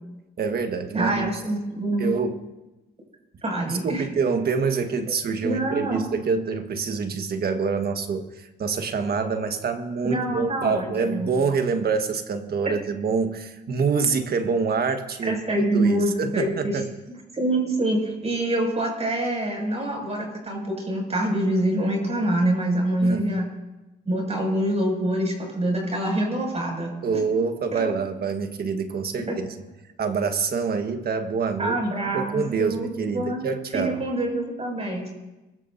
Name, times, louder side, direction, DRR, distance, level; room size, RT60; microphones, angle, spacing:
voice 1, 0.4-1.3 2.0-2.4 3.8-8.3 8.6-15.4 15.7-16.9 23.0-23.3 27.0-29.5 30.0-31.8 32.1-34.0, right 5 dB, 50° right, 7 dB, 1.5 m, -26 dB
voice 2, 0.9-2.1 3.4-4.0 5.1-5.2 5.4-6.0 10.0-11.3 15.3-16.8 17.3-23.5 24.0-26.9 27.7-27.8 29.3-29.4 31.6-33.4 33.7-35.1, right 1 dB, 30° right, 0 dB, 6.4 m, -25 dB
23.5 x 15.0 x 2.7 m, 1.0 s
cardioid pair, 90°, 20 cm